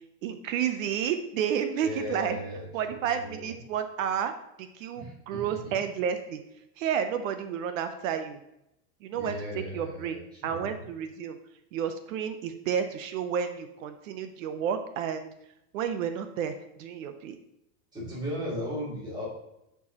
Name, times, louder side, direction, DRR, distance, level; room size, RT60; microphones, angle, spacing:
voice 1, 0.2-2.4 2.7-4.3 4.6-6.4 6.8-8.4 9.0-10.2 10.4-11.4 11.7-15.3 15.7-17.4, right 8 dB, 60° right, 9 dB, 0.7 m, -31 dB
voice 2, 1.8-3.5 5.0-5.9 9.1-10.8 17.9-19.2, equal, 10° right, -8 dB, 2.5 m, -37 dB
10.0 x 4.6 x 2.9 m, 0.84 s
supercardioid pair, 170°, 44 cm